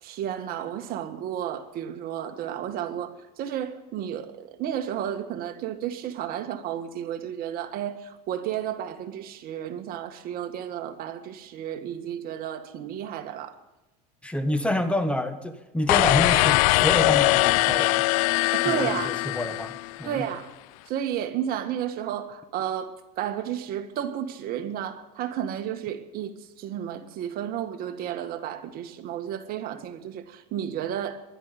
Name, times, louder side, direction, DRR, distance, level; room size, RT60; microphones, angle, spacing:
voice 1, 0.0-13.6 18.5-19.2 20.0-20.5 20.9-31.2, right 10 dB, 50° right, 1.7 m, -32 dB
voice 2, 14.2-18.1 18.6-20.2, left 1 dB, 5° left, 1.4 m, -28 dB
sound 1, 15.9-20.1, left 23 dB, 75° left, 0.4 m, -22 dB
20.0 x 12.5 x 5.1 m
supercardioid pair, 120°, 19 cm